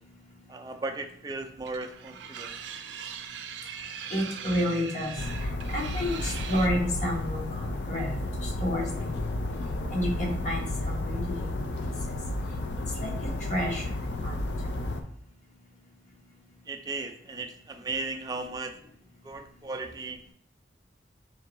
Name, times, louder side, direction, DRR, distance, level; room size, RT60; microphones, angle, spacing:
voice 1, 0.5-2.5 16.7-18.8 19.2-20.2, right 3 dB, 20° right, 5 dB, 0.3 m, -36 dB
sound 1, 1.6-6.7, right 7 dB, 90° right, 0.4 m, -40 dB
voice 2, 4.1-8.1 8.4-9.1 9.9-11.6 13.0-13.1 13.5-13.8 14.2-14.4, equal, 40° left, 0 dB, 1.0 m, -30 dB
sound 2, 5.2-15.0, left 2 dB, 85° left, 0.5 m, -32 dB
4.5 x 3.4 x 2.9 m, 0.68 s
head